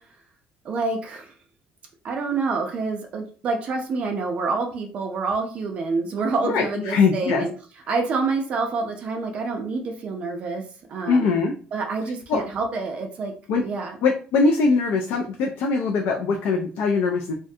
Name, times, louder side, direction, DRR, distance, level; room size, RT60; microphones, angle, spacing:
voice 1, 0.6-1.3 2.0-7.5 7.9-10.6 10.9-11.4 11.7-13.3 13.6-14.0, right 4 dB, 40° right, 3 dB, 0.4 m, -27 dB
voice 2, 6.4-7.4 11.1-11.5 12.3-12.4 13.5-13.6 14.0-17.3, left 4 dB, 65° left, 2 dB, 0.4 m, -21 dB
2.4 x 2.2 x 2.6 m, 0.40 s
cardioid pair, 175°, 3 cm